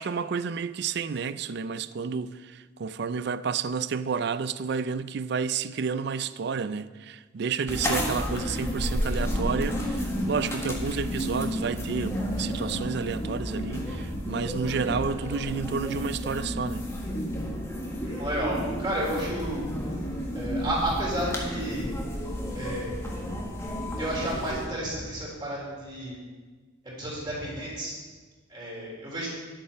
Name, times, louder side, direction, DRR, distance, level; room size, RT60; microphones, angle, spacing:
voice 1, 0.0-16.9, right 5 dB, 55° right, 0.4 m, -31 dB
sound 1, 7.7-24.7, equal, 15° left, 1.5 m, -31 dB
voice 2, 18.0-19.6 20.3-21.9 22.5-23.0 23.9-26.2 27.0-27.9 28.5-29.3, right 1 dB, 25° right, 3.8 m, -31 dB
10.5 x 8.5 x 5.7 m
head